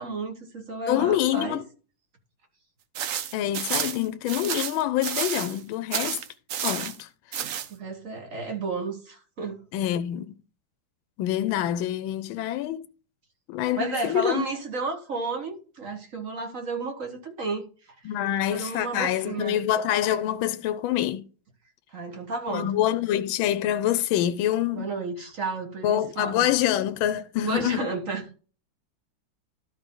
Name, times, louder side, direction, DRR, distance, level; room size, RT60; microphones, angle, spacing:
voice 1, 0.0-1.6 7.7-9.6 13.8-17.6 18.5-19.6 21.9-22.7 24.7-26.5 27.4-28.2, right 3 dB, 40° right, 1.6 m, -32 dB
voice 2, 0.9-1.7 3.3-6.2 6.6-7.5 9.7-10.3 11.2-12.8 13.5-14.5 18.0-21.2 22.5-24.9 25.8-27.9, left 12 dB, 75° left, 1.3 m, -26 dB
sound 1, 2.9-5.6 5.9-7.0 7.3-7.7, right 9 dB, 80° right, 0.7 m, -30 dB
12.5 x 4.8 x 3.8 m
omnidirectional pair, 2.3 m